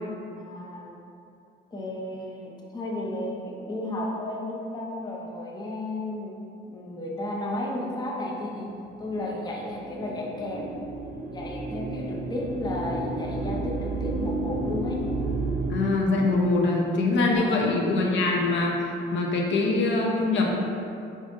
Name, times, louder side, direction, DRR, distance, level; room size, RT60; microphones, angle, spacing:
voice 1, 0.4-0.9 1.7-6.3 6.6-8.7 9.0-10.7 11.3-15.0 17.1-17.7, left 1 dB, 20° left, -2 dB, 0.5 m, -33 dB
sound 1, 8.5-15.7, right 2 dB, 55° right, 0.6 m, -31 dB
voice 2, 15.7-20.5, left 2 dB, 65° left, 0 dB, 0.6 m, -23 dB
4.9 x 2.6 x 2.6 m, 2.7 s
cardioid pair, 90°, 20 cm